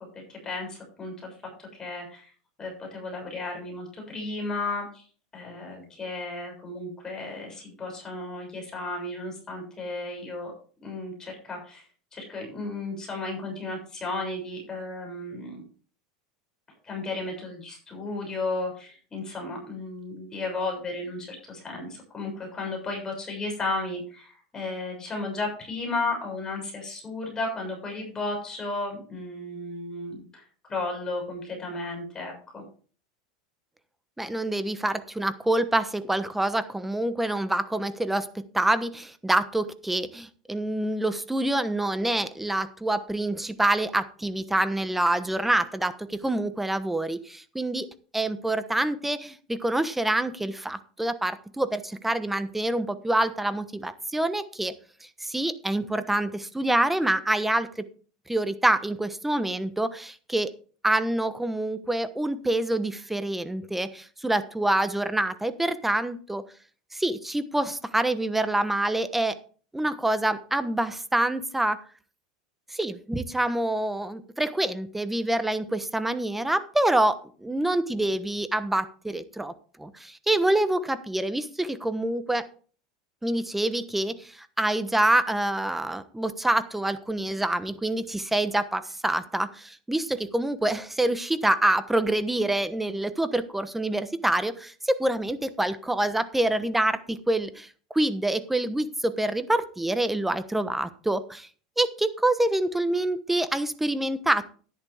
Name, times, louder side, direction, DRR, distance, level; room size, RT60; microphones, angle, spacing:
voice 1, 0.1-1.3 1.6-2.3 2.6-5.0 5.3-10.5 10.8-11.8 12.1-15.6 16.8-32.6, left 2 dB, 20° left, 1 dB, 6.9 m, -34 dB
voice 2, 34.2-47.9 48.1-54.7 55.2-57.9 58.3-60.5 60.8-66.4 66.9-69.4 69.7-71.8 72.7-79.5 79.8-82.5 83.2-97.7 97.9-101.5 101.8-104.5, right 1 dB, 5° right, 12 dB, 1.1 m, -26 dB
11.0 x 10.5 x 3.6 m, 0.41 s
hypercardioid pair, 105°, 3 cm